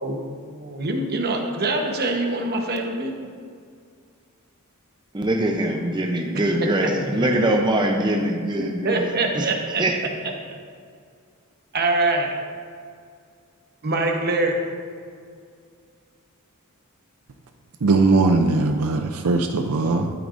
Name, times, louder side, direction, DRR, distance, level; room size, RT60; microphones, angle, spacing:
voice 1, 0.0-3.3 6.8-7.5 8.8-9.8 10.5-10.6 11.7-12.4 13.8-14.7, right 2 dB, 45° right, 2 dB, 1.1 m, -24 dB
voice 2, 5.1-9.1 9.4-9.5 9.8-9.9, right 1 dB, 20° right, 2 dB, 0.6 m, -22 dB
voice 3, 17.8-20.1, right 3 dB, 70° right, 5 dB, 0.5 m, -19 dB
12.0 x 8.8 x 2.6 m, 2.2 s
head